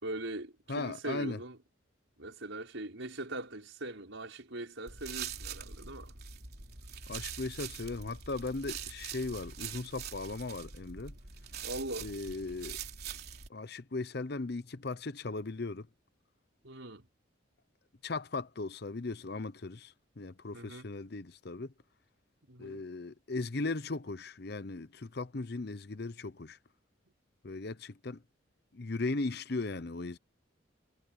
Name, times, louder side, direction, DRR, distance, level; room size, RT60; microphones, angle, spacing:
voice 1, 0.0-1.6 2.2-6.1 11.6-12.1 16.6-17.1 20.5-20.9 22.5-22.8, right 1 dB, 75° right, 5.3 m, -41 dB
voice 2, 0.7-1.4 7.1-11.2 12.0-12.8 13.5-15.9 18.0-21.7 22.6-26.6 27.4-28.2 28.7-30.2, left 3 dB, 55° left, 0.7 m, -37 dB
sound 1, 4.9-13.5, right 7 dB, 50° right, 3.6 m, -43 dB
head